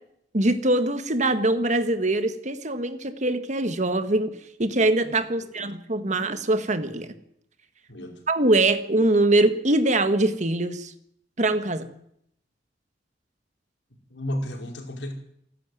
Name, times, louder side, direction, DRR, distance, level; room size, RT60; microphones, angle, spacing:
voice 1, 0.3-4.3 4.6-7.1 8.3-10.9 11.4-11.9, right 2 dB, 40° right, 10 dB, 1.6 m, -23 dB
voice 2, 7.9-8.2 14.1-15.1, equal, 75° left, 3 dB, 5.0 m, -33 dB
27.5 x 12.0 x 9.2 m, 0.73 s
head